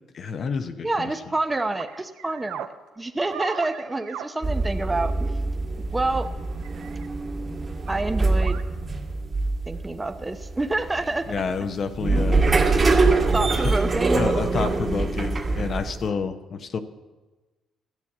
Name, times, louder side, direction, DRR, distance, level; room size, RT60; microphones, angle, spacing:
voice 1, 0.1-1.1 11.3-12.5 13.6-13.7 14.1-16.8, left 5 dB, 55° left, 8 dB, 0.8 m, -29 dB
voice 2, 0.8-2.7 3.0-5.4 5.9-6.3 7.9-8.6 9.7-11.3 12.1-12.5 13.3-14.3, right 2 dB, 15° right, 7 dB, 0.7 m, -28 dB
sound 1, 1.0-1.1 1.8-2.7 3.3-4.3 4.6-4.7 6.1-6.3 6.6-7.1 7.9-8.0 8.4-8.6 10.1-10.2 11.7-11.9 12.5-12.6 14.1-14.2 14.6-14.7, right 9 dB, 85° right, 0.7 m, -37 dB
sound 2, 4.4-16.1, right 3 dB, 35° right, 1.9 m, -24 dB
12.5 x 7.1 x 8.5 m, 1.2 s
cardioid pair, 85°, 0 cm